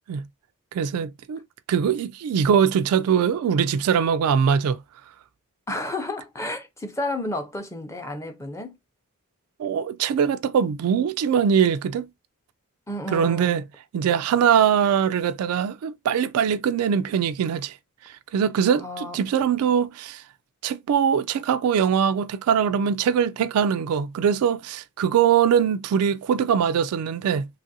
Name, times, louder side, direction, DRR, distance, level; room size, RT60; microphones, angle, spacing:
voice 1, 0.7-1.4 1.7-4.8 9.6-12.1 13.1-13.6 13.9-17.7 18.3-20.2 20.6-27.5, right 7 dB, 75° right, 0.3 m, -22 dB
voice 2, 5.7-8.7 12.9-13.6 18.8-19.2, left 1 dB, 15° left, 0.6 m, -31 dB
2.9 x 2.5 x 2.7 m
head